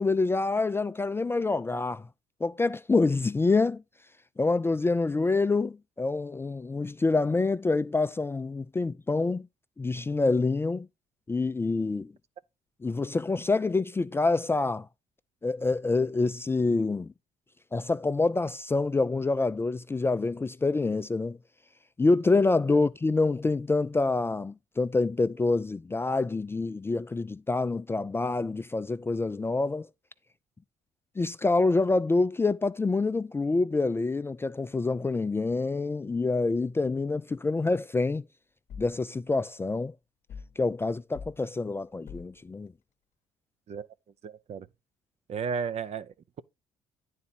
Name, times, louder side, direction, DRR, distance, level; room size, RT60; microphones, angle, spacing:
voice 1, 0.0-2.1 2.4-3.8 4.4-9.5 9.8-10.9 11.3-12.1 12.8-14.9 15.4-17.1 17.7-21.4 22.0-29.9 31.2-38.2 38.8-39.9 40.6-42.7, left 3 dB, 15° left, 0.3 m, -26 dB
sound 1, 38.7-39.0 40.3-40.6 41.1-41.4 42.1-42.4, left 6 dB, 55° left, 0.9 m, -43 dB
voice 2, 44.2-44.7 45.3-46.4, right 6 dB, 45° right, 0.5 m, -34 dB
9.6 x 4.1 x 4.2 m
supercardioid pair, 70°, 15 cm